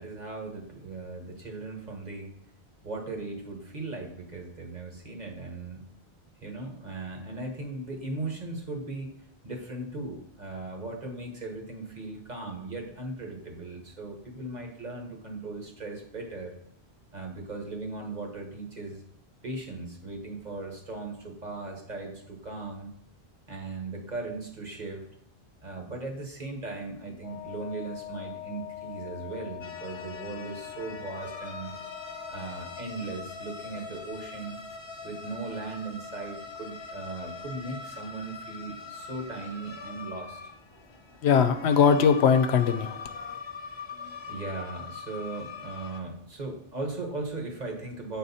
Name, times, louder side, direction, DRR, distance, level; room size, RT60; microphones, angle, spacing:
voice 1, 0.0-2.3 2.8-5.9 6.4-9.2 9.4-16.5 17.1-19.0 19.4-22.9 23.5-25.1 25.6-31.7 32.3-34.6 35.0-40.4 43.9-48.2, right 3 dB, 45° right, 2 dB, 1.2 m, -38 dB
Wind instrument woodwind instrument, 27.2-32.9, left 12 dB, 5° right, 0.9 m, -42 dB
sound 1, 29.6-46.0, left 4 dB, 35° left, 0.5 m, -42 dB
voice 2, 41.2-43.4, left 6 dB, 85° left, 9 dB, 0.9 m, -21 dB
7.4 x 4.1 x 4.1 m, 0.70 s
omnidirectional pair, 1.1 m